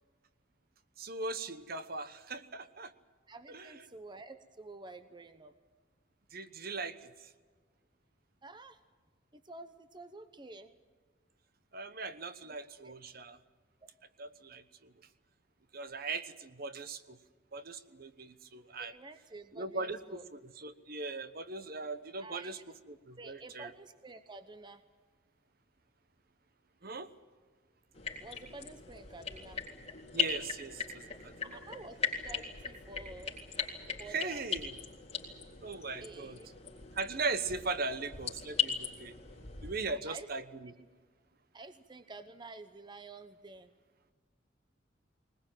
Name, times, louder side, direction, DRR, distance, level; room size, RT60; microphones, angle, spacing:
voice 1, 1.0-2.9 3.5-3.8 6.3-7.3 11.7-13.4 14.2-14.9 15.7-17.2 17.5-18.9 19.5-22.6 22.9-23.7 26.8-27.1 30.1-31.6 34.1-34.7 35.6-36.4 36.9-39.2 39.6-40.7, right 3 dB, 50° right, 12 dB, 1.1 m, -39 dB
voice 2, 3.3-5.5 8.4-8.8 9.3-10.7 12.8-13.0 18.8-20.2 22.2-22.5 23.2-24.8 28.2-29.6 31.4-33.3 34.0-34.5 36.0-36.5 39.9-40.3 41.5-43.7, right 2 dB, 25° right, 11 dB, 0.8 m, -50 dB
sound 1, 27.9-39.7, left 7 dB, 30° left, 3.9 m, -39 dB
20.5 x 20.5 x 9.0 m, 1.5 s
head